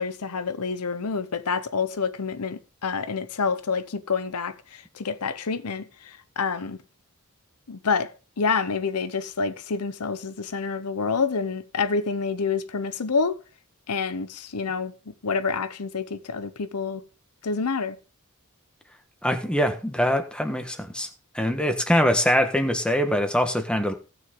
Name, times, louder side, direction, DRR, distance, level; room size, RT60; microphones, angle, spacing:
voice 1, 0.0-6.8 7.7-8.1 8.4-13.4 13.9-17.0 17.4-18.0, left 5 dB, 90° left, 0.8 m, -28 dB
voice 2, 19.2-21.1 21.3-23.9, equal, 5° left, 1.3 m, -23 dB
16.5 x 6.4 x 3.7 m
head